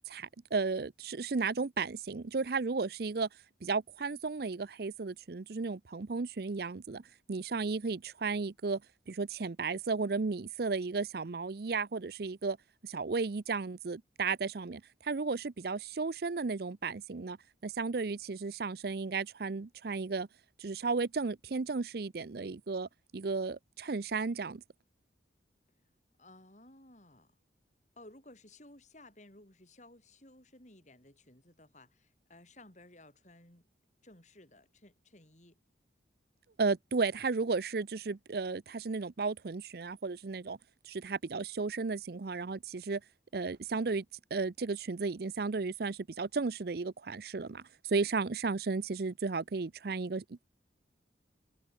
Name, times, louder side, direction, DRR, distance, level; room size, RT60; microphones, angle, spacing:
voice 1, 0.1-3.3 3.6-7.0 7.3-8.8 9.1-12.6 12.8-17.4 17.6-20.3 20.6-24.6 36.6-40.6 40.8-43.0 43.3-44.0 44.3-50.4, right 4 dB, 55° right, 0.5 m, -34 dB
voice 2, 26.2-27.3 28.0-33.7 34.0-35.6, left 1 dB, 40° left, 5.7 m, -57 dB
head